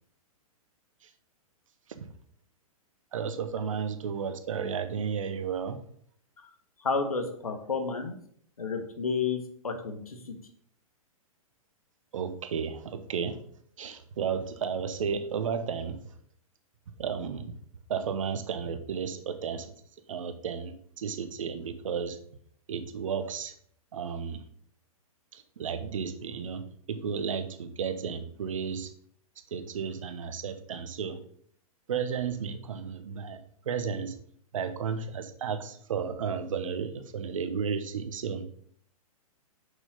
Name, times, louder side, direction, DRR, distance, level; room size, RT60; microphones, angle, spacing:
voice 1, 3.1-5.8 12.1-13.4 13.8-16.2 17.0-17.5 17.9-19.7 20.1-22.2 22.7-23.5 23.9-24.4 25.3-28.9 29.5-31.2 31.9-33.4 33.6-34.2 34.5-38.4, right 6 dB, 60° right, 9 dB, 1.0 m, -33 dB
voice 2, 6.8-8.1 8.6-9.4 9.6-10.3, left 5 dB, 75° left, 5 dB, 1.5 m, -31 dB
6.2 x 5.8 x 5.1 m, 0.62 s
figure-of-eight pair, 110°, 19 cm